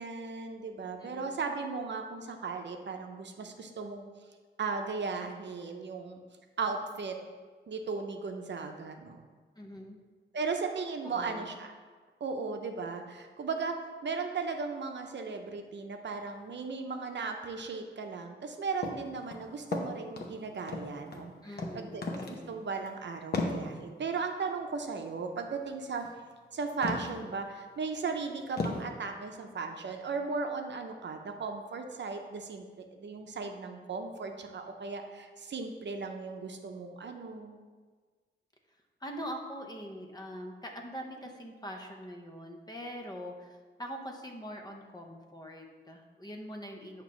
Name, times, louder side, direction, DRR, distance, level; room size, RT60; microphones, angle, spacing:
voice 1, 0.0-4.0 4.6-6.2 6.6-7.1 7.7-9.3 10.3-11.7 12.2-13.8 14.0-22.0 22.3-26.0 26.5-37.6, right 4 dB, 65° right, 4 dB, 0.6 m, -36 dB
voice 2, 1.0-1.3 9.6-10.0 11.0-11.5 21.4-22.6 39.0-47.0, equal, 20° left, 2 dB, 0.7 m, -43 dB
sound 1, 18.8-19.0 19.3-20.3 20.7-21.3 21.6-21.7 22.0-22.4 22.7-22.9 23.3-23.6 26.0-26.1 26.8-27.2 27.7-27.8 28.6-28.9, left 3 dB, 55° left, 0.8 m, -34 dB
8.6 x 2.9 x 6.1 m, 1.5 s
wide cardioid pair, 180°, 20 cm